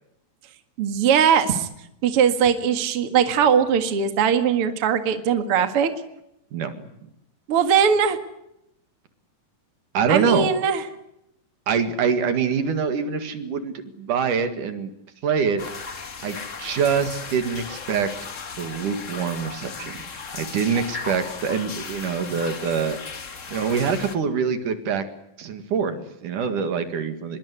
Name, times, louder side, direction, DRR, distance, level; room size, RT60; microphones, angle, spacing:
voice 1, 0.8-1.7 2.0-5.9 7.5-8.2 10.1-10.8, right 7 dB, 45° right, 8 dB, 2.5 m, -20 dB
voice 2, 9.9-10.5 11.7-14.9 15.2-15.9 16.2-18.1 18.6-20.0 20.3-23.0 23.5-25.1 25.4-27.4, right 6 dB, 70° right, 9 dB, 3.4 m, -25 dB
sound 1, 15.6-24.1, left 5 dB, 60° left, 0.8 m, -36 dB
25.5 x 23.0 x 9.7 m, 0.81 s
omnidirectional pair, 4.0 m